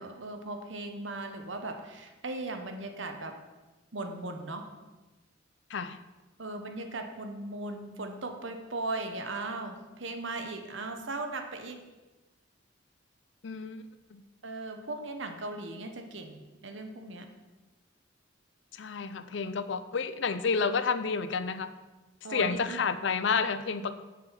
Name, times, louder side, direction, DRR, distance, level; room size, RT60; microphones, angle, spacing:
voice 1, 0.0-3.4 3.9-4.7 6.4-11.8 14.4-17.3 22.2-22.8, right 2 dB, 70° right, 6 dB, 1.1 m, -38 dB
voice 2, 13.4-13.8 14.1-14.2 18.7-21.7 22.3-24.0, left 5 dB, 65° left, 12 dB, 0.5 m, -30 dB
7.7 x 7.3 x 5.8 m, 1.2 s
head